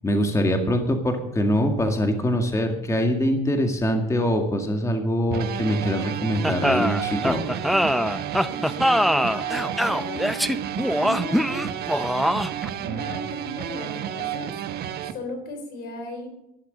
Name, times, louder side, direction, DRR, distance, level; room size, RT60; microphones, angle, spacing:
voice 1, 0.0-7.5, equal, 20° left, 4 dB, 1.9 m, -23 dB
sound 1, 5.3-15.1, right 9 dB, 70° right, 1.3 m, -31 dB
sound 2, 6.4-12.7, equal, ahead, 0.5 m, -23 dB
voice 2, 8.4-10.7 11.0-11.6 12.8-16.3, left 1 dB, 70° left, 6 dB, 4.0 m, -37 dB
12.0 x 11.5 x 6.6 m, 0.90 s
cardioid pair, 110°, 17 cm